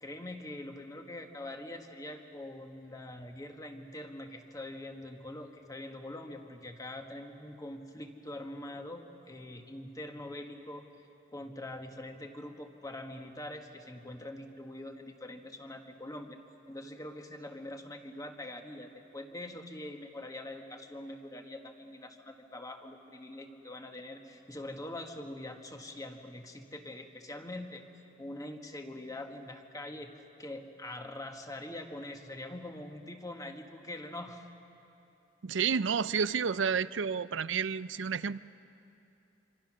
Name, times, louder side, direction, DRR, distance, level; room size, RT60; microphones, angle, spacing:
voice 1, 0.0-11.1 11.3-16.4 16.7-27.8 28.2-30.1 30.4-34.4, left 1 dB, 20° left, 4 dB, 1.5 m, -44 dB
voice 2, 35.4-38.4, right 6 dB, 80° right, 16 dB, 0.5 m, -30 dB
26.0 x 26.0 x 6.3 m, 2.8 s
head